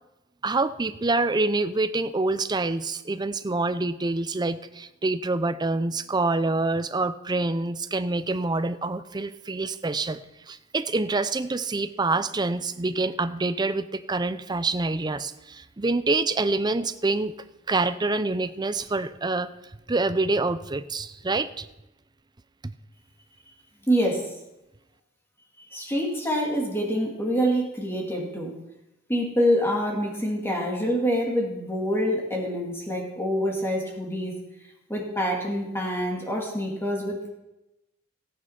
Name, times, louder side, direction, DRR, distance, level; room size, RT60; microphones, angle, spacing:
voice 1, 0.4-10.2 10.5-17.3 17.7-19.5 19.9-21.7 22.6-22.7, right 3 dB, 20° right, 12 dB, 0.5 m, -26 dB
voice 2, 23.9-24.2 25.7-28.5 29.1-34.3 34.9-37.3, equal, 10° left, -2 dB, 2.3 m, -26 dB
14.5 x 9.4 x 5.8 m, 0.95 s
head